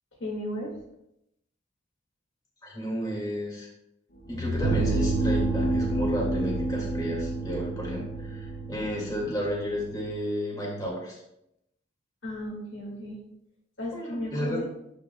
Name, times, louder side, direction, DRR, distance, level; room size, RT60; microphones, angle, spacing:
voice 1, 0.2-0.7 12.2-13.2 13.8-14.7, left 1 dB, 70° left, -2 dB, 2.1 m, -34 dB
voice 2, 2.6-3.7 4.3-11.2 13.9-14.6, equal, 20° left, -3 dB, 2.0 m, -32 dB
sound 1, 4.1-10.1, equal, 55° left, 1.1 m, -30 dB
Bass guitar, 4.6-10.9, right 7 dB, 90° right, 0.3 m, -34 dB
12.0 x 5.2 x 2.2 m, 0.80 s
head